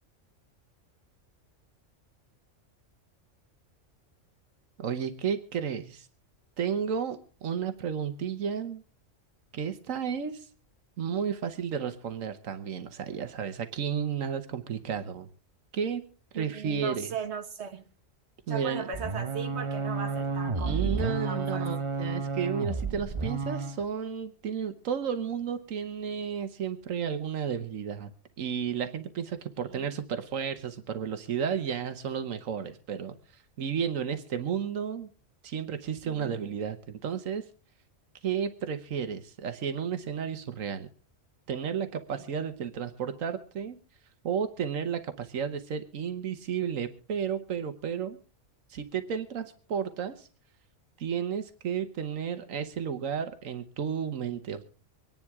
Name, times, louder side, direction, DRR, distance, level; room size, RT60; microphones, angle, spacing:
voice 1, 4.8-6.1 6.6-8.8 9.5-10.5 11.0-15.3 15.7-16.0 16.3-17.2 18.5-18.8 20.6-28.1 28.4-35.1 35.4-37.5 38.2-40.9 41.5-43.8 44.2-48.2 48.7-50.3 51.0-54.6, right 7 dB, 90° right, 1.4 m, -32 dB
voice 2, 16.3-17.8 18.5-21.8 29.6-29.9 42.1-42.2, right 6 dB, 60° right, 1.6 m, -38 dB
sound 1, 18.9-23.8, right 4 dB, 30° right, 0.7 m, -31 dB
24.5 x 10.5 x 3.6 m
omnidirectional pair, 1.3 m